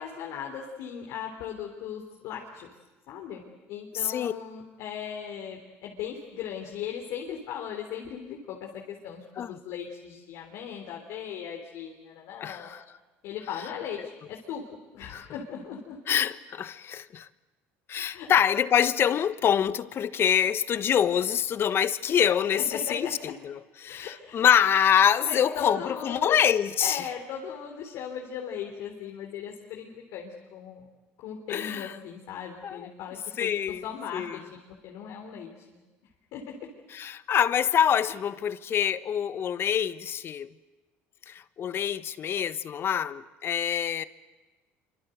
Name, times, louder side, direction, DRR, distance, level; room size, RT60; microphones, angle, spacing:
voice 1, 0.0-2.7 3.1-3.4 3.7-12.7 13.2-14.6 14.9-16.0 18.1-18.3 22.5-23.1 23.9-24.4 25.2-26.5 26.8-30.9 31.2-33.5 33.8-34.4 34.8-35.8 36.3-36.4, left 8 dB, 70° left, 3.8 m, -38 dB
voice 2, 3.9-4.3 9.4-9.6 12.4-12.8 15.1-15.3 16.1-17.3 17.9-23.1 23.4-27.1 31.5-31.9 32.6-32.9 33.4-33.8 34.1-34.4 36.9-40.5 41.3-44.0, left 9 dB, 45° left, 1.2 m, -25 dB
26.5 x 25.5 x 8.0 m
supercardioid pair, 95°, 5 cm